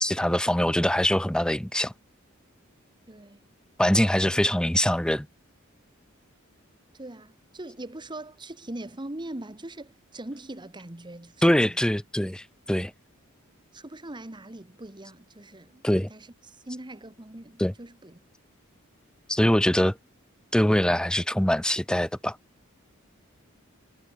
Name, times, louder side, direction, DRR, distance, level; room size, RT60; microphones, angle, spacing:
voice 1, 0.0-1.9 3.8-5.3 11.4-12.9 15.8-16.1 17.6-17.7 19.3-20.0 20.5-22.4, equal, 5° left, 0.8 m, -23 dB
voice 2, 3.1-3.4 6.9-11.9 13.7-18.2, right 1 dB, 20° right, 1.4 m, -41 dB
head